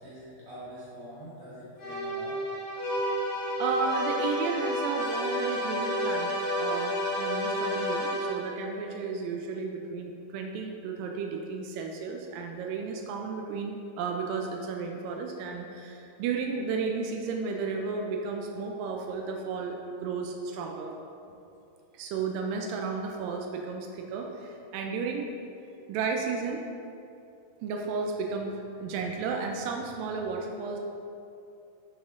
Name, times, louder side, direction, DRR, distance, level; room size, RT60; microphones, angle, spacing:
voice 1, 0.0-2.6, equal, 70° right, -9 dB, 1.0 m, -45 dB
sound 1, 1.8-8.6, equal, 45° left, 1.4 m, -30 dB
voice 2, 3.6-20.9 21.9-25.3 25.9-26.6 27.6-30.8, right 4 dB, 90° right, 2 dB, 2.3 m, -33 dB
8.1 x 6.1 x 2.5 m, 2.7 s
omnidirectional pair, 3.9 m